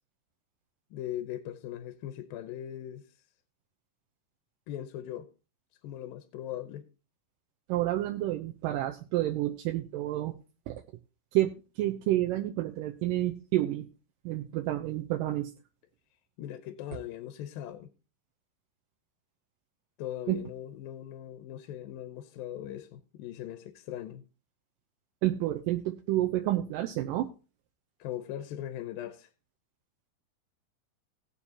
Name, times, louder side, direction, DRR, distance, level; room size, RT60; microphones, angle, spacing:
voice 1, 0.9-3.1 4.7-5.3 5.8-6.9 16.4-17.9 20.0-24.2 28.0-29.3, left 11 dB, 85° left, 2.6 m, -39 dB
voice 2, 7.7-10.4 10.7-10.8 11.3-13.8 14.3-15.5 20.3-20.4 25.2-27.3, right 15 dB, 80° right, 2.3 m, -29 dB
19.0 x 7.1 x 2.8 m
omnidirectional pair, 4.1 m